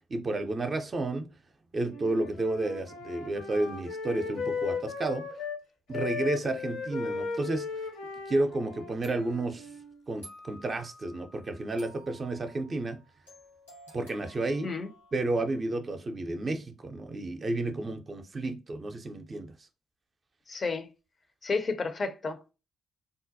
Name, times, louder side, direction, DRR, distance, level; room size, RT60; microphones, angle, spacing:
voice 1, 0.1-1.3 1.7-5.3 5.9-7.7 8.3-9.7 10.1-13.0 13.9-14.7 15.1-19.5, right 2 dB, 35° right, 0.5 m, -31 dB
Wind instrument woodwind instrument, 1.9-5.6 5.9-10.0, left 5 dB, 65° left, 0.8 m, -37 dB
sound 1, 9.0-15.8, equal, 90° left, 1.5 m, -54 dB
voice 2, 20.5-20.9 21.4-22.5, left 4 dB, 40° left, 0.5 m, -31 dB
3.7 x 2.2 x 2.6 m
figure-of-eight pair, 40°, 0 cm